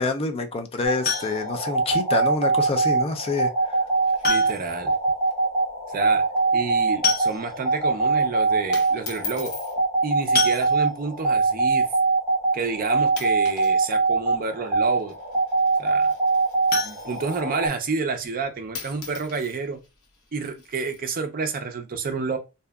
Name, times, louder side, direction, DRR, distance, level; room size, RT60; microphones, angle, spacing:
voice 1, 0.0-3.8, left 3 dB, 25° left, 0.3 m, -27 dB
sound 1, 0.8-17.7, right 3 dB, 15° right, 0.9 m, -23 dB
sound 2, 1.0-1.7 3.2-3.3 4.2-4.8 5.1-5.2 5.5-5.6 6.6-6.7 7.0-7.7 8.3-8.4 8.7-8.9 10.3-11.2 16.7-17.9 18.2-18.3 18.8-18.9 19.2-19.3, left 5 dB, 40° left, 0.8 m, -29 dB
sound 3, 3.7-5.0 5.3-5.4 5.7-5.9 6.3-6.6 6.9-7.2 8.0-8.2 8.7-9.8 10.8-11.0 11.7-11.8 12.5-12.7 13.1-13.8 14.0-17.6 18.4-18.5 18.7-21.0, left 5 dB, 75° left, 0.7 m, -41 dB
voice 2, 4.3-5.0 5.9-6.2 6.5-9.5 10.0-11.9 12.5-15.2 15.8-16.1 16.8-19.8 20.3-22.4, right 4 dB, 40° right, 0.5 m, -29 dB
2.7 x 2.3 x 2.2 m
head